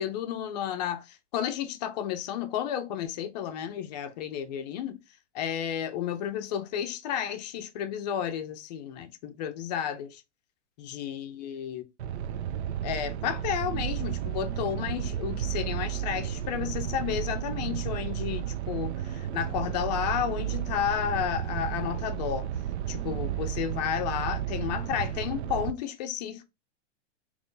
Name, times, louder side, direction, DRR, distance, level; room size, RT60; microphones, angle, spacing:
voice 1, 0.0-5.0 5.3-10.2 10.8-11.8 12.8-22.5 22.9-26.4, left 9 dB, 35° left, 0.5 m, -32 dB
sound 1, 12.0-25.7, right 10 dB, 65° right, 0.5 m, -33 dB
3.0 x 2.5 x 3.6 m
hypercardioid pair, 140°, 37 cm